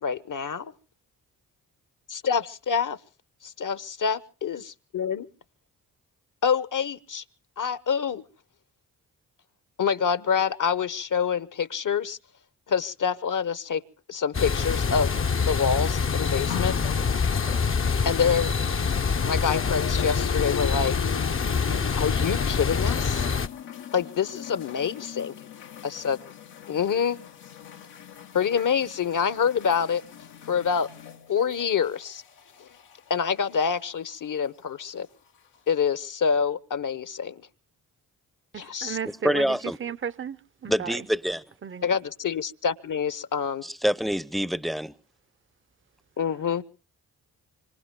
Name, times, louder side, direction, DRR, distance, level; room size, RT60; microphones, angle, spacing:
voice 1, 0.0-0.7 2.1-3.0 3.4-5.3 6.4-7.2 7.6-8.2 9.8-12.2 12.7-13.8 14.1-15.1 15.4-16.8 18.0-18.5 19.2-20.9 21.5-21.6 22.0-23.3 23.9-25.3 25.8-26.2 26.7-27.2 28.3-30.0 30.4-30.9 31.3-32.2 32.6-32.7 33.1-35.1 35.7-37.4 38.5-39.0 41.8-42.0 42.2-43.6 46.2-46.6, left 7 dB, 50° left, 1.0 m, -26 dB
sound 1, 14.3-23.5, left 5 dB, 30° left, 0.7 m, -25 dB
sound 2, 16.5-18.9 19.2-33.9 34.8-34.9, left 9 dB, 85° left, 1.3 m, -40 dB
voice 2, 38.5-41.1 41.6-41.8, right 7 dB, 30° right, 0.7 m, -34 dB
voice 3, 39.2-39.8 40.7-41.4 43.6-44.9, equal, ahead, 0.7 m, -26 dB
25.5 x 25.0 x 2.2 m
supercardioid pair, 45°, 40 cm